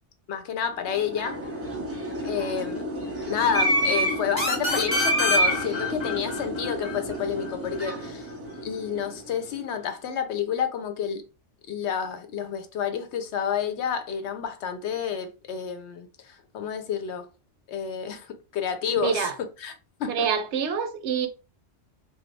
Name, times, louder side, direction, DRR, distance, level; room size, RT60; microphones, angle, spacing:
voice 1, 0.3-1.4 2.2-2.9 3.2-8.3 8.6-11.2 11.7-17.2 17.7-19.3 19.6-19.7 20.0-20.3, left 7 dB, 75° left, 0.9 m, -29 dB
sound 1, 0.8-9.4, right 1 dB, 15° right, 0.7 m, -29 dB
sound 2, 4.4-7.8, left 3 dB, 25° left, 0.8 m, -28 dB
voice 2, 18.9-19.4 20.1-21.3, right 7 dB, 75° right, 0.8 m, -26 dB
3.1 x 2.2 x 3.1 m
omnidirectional pair, 1.2 m